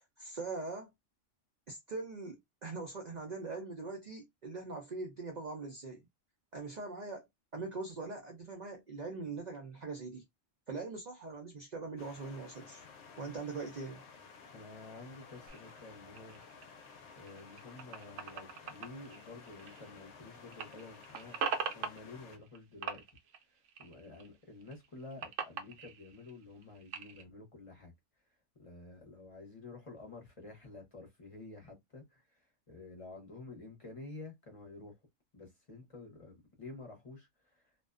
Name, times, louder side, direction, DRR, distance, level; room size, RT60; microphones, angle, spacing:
voice 1, 0.2-0.9 1.7-6.0 6.5-7.2 7.5-10.2 10.7-12.8 13.2-14.0, right 3 dB, 50° right, 0.5 m, -42 dB
sound 1, 12.0-22.4, left 5 dB, 70° left, 0.8 m, -54 dB
voice 2, 14.5-16.4 17.2-21.4 21.7-23.0 23.8-27.9 28.6-35.0 35.3-37.7, left 3 dB, 30° left, 0.7 m, -50 dB
sound 2, 15.5-20.2 20.5-22.6 22.8-24.3 24.6-27.2, right 6 dB, 85° right, 1.0 m, -42 dB
2.5 x 2.1 x 2.3 m
omnidirectional pair, 1.3 m